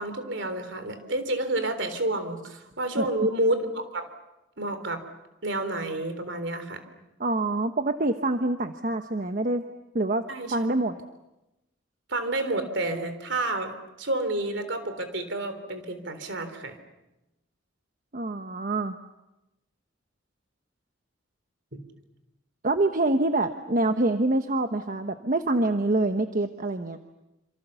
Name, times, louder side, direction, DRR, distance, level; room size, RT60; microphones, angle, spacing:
voice 1, 0.0-4.1 4.6-5.0 5.4-6.8 10.3-10.7 12.1-16.8 21.7-21.8, right 1 dB, 65° right, 9 dB, 3.7 m, -29 dB
voice 2, 7.2-9.6 9.9-10.2 10.5-11.0 18.1-19.0 22.6-27.0, right 2 dB, 45° right, 7 dB, 1.1 m, -26 dB
27.5 x 27.5 x 7.0 m, 0.95 s
head